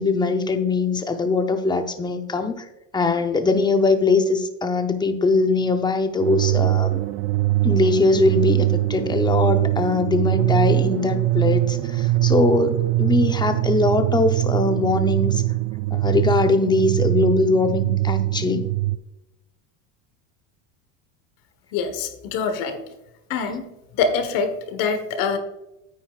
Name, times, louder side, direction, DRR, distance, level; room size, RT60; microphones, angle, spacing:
voice 1, 0.0-2.6 2.9-7.0 7.6-15.4 15.9-18.7, left 3 dB, 10° left, 7 dB, 0.7 m, -21 dB
sound 1, 6.2-19.0, right 17 dB, 55° right, 0.4 m, -22 dB
voice 2, 21.7-22.8 23.3-23.7 24.0-25.4, left 5 dB, 65° left, 7 dB, 1.4 m, -24 dB
9.3 x 9.1 x 2.4 m, 0.91 s
supercardioid pair, 125°, 37 cm